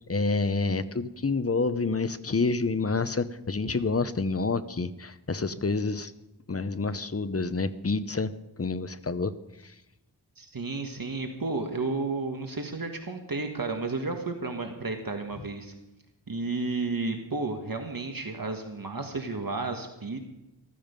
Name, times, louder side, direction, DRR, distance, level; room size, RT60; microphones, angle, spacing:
voice 1, 0.1-6.1 6.5-8.3 8.6-9.3 9.6-9.7, left 3 dB, 35° left, 13 dB, 0.8 m, -28 dB
voice 2, 10.4-15.7 16.3-20.3, right 3 dB, 55° right, 4 dB, 1.6 m, -32 dB
14.5 x 14.5 x 5.3 m, 0.95 s
wide cardioid pair, 85°, 42 cm